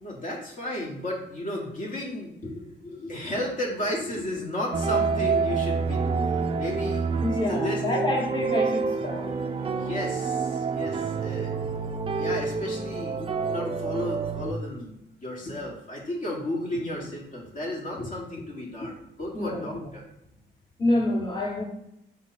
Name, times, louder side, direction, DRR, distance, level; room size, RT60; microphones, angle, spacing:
voice 1, 0.0-7.2 7.5-8.1 9.0-9.3 9.6-11.5 12.1-20.0, left 1 dB, 40° left, -2 dB, 1.2 m, -34 dB
sound 1, 4.7-14.5, right 5 dB, 30° right, 0.4 m, -28 dB
voice 2, 7.2-9.3 19.3-19.7 20.8-21.6, left 1 dB, 25° left, -2 dB, 1.2 m, -27 dB
4.1 x 3.2 x 4.0 m, 0.80 s
cardioid pair, 90°, 20 cm